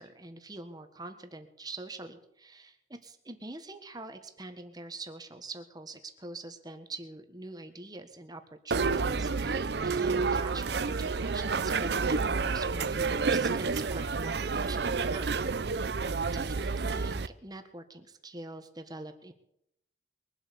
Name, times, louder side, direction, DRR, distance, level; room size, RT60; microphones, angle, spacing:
voice 1, 0.0-15.4 16.3-19.3, right 2 dB, 25° right, 7 dB, 1.5 m, -44 dB
Background Noises, 8.7-17.3, right 4 dB, 70° right, 0.6 m, -29 dB
22.0 x 8.1 x 7.0 m, 0.75 s
head